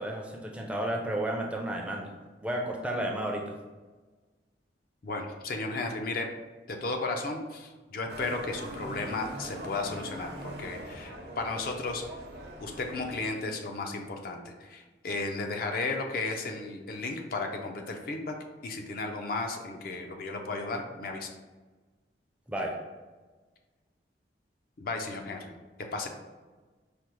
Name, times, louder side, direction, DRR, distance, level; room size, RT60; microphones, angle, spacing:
voice 1, 0.0-2.1 2.4-3.5 22.5-22.8, right 1 dB, 5° right, 0 dB, 0.4 m, -32 dB
voice 2, 5.0-6.3 6.7-12.0 12.6-18.3 18.6-21.3 24.8-25.5 25.9-26.1, left 3 dB, 55° left, 3 dB, 0.4 m, -34 dB
Motorcycle, 8.1-13.2, right 1 dB, 65° right, 0.6 m, -41 dB
4.9 x 2.0 x 2.9 m, 1.3 s
head